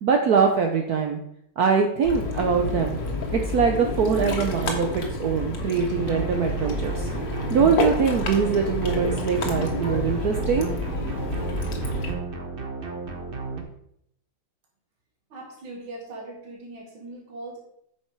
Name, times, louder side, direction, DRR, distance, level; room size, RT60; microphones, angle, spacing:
voice 1, 0.0-1.2 1.6-3.0 3.3-7.1 7.5-10.7, right 6 dB, 60° right, 4 dB, 1.1 m, -23 dB
Ocean, 2.0-12.1, left 2 dB, 70° left, 2.1 m, -29 dB
sound 1, 5.9-13.6, right 4 dB, 35° right, 1.0 m, -34 dB
voice 2, 15.3-17.6, right 2 dB, 85° right, -1 dB, 2.4 m, -40 dB
8.8 x 6.1 x 4.7 m, 0.72 s
omnidirectional pair, 2.1 m